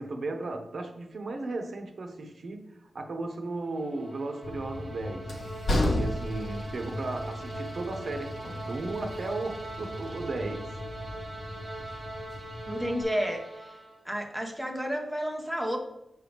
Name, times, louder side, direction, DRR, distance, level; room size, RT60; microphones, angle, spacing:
voice 1, 0.0-5.4 6.0-8.3 8.6-10.8, right 2 dB, 60° right, 0.8 m, -35 dB
sound 1, 3.5-14.1, right 2 dB, 40° right, 1.8 m, -42 dB
Train, 4.4-13.0, left 1 dB, 60° left, 0.8 m, -35 dB
voice 2, 12.7-13.8 14.0-15.8, equal, ahead, 0.6 m, -31 dB
6.6 x 4.9 x 3.4 m
wide cardioid pair, 160°, 0 cm